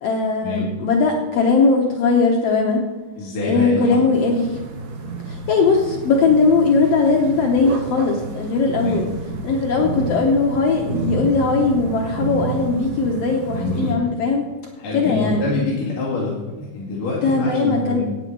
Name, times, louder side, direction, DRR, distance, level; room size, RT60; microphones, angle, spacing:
voice 1, 0.0-2.8 3.4-4.6 5.3-9.1 9.4-14.5 14.9-15.5 17.2-18.0, left 4 dB, 85° left, 1 dB, 1.4 m, -19 dB
voice 2, 3.2-4.0 8.8-9.0 13.5-13.9 14.8-18.0, left 3 dB, 65° left, -7 dB, 3.7 m, -25 dB
sound 1, 4.1-13.9, right 3 dB, 60° right, 2.2 m, -30 dB
13.0 x 9.2 x 4.6 m, 1.3 s
omnidirectional pair, 4.3 m